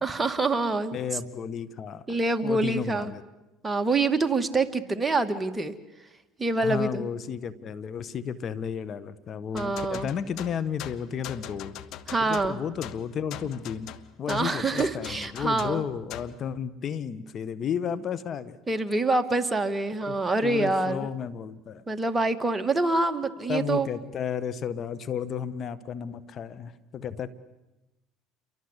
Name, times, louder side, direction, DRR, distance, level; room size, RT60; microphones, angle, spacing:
voice 1, 0.0-1.0 2.1-3.1 3.6-5.7 6.4-7.1 9.5-10.1 12.1-12.6 14.3-15.8 18.7-21.1 21.9-23.9, right 3 dB, 15° right, 7 dB, 2.2 m, -26 dB
voice 2, 0.9-2.0 2.4-3.2 6.6-11.8 12.2-13.9 14.2-18.6 20.0-20.2 20.4-21.8 23.5-27.3, left 7 dB, 45° left, 14 dB, 1.6 m, -33 dB
sound 1, 9.6-16.4, left 12 dB, 65° left, 1.6 m, -41 dB
29.5 x 23.5 x 8.3 m, 1.0 s
supercardioid pair, 85°, 0 cm